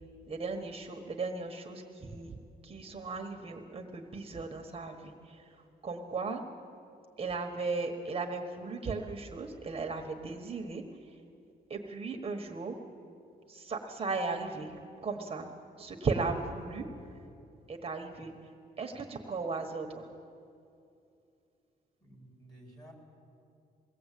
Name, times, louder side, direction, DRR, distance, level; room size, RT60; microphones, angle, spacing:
voice 1, 0.3-2.3 2.6-5.4 5.8-6.4 7.2-10.8 11.7-12.8 13.5-14.7 15.0-15.5 15.8-16.9 17.7-18.3 18.8-20.1, right 4 dB, 35° right, 3 dB, 1.4 m, -36 dB
voice 2, 22.0-22.9, right 1 dB, 25° left, 0 dB, 5.0 m, -53 dB
22.0 x 17.5 x 8.4 m, 2.6 s
wide cardioid pair, 140°, 17 cm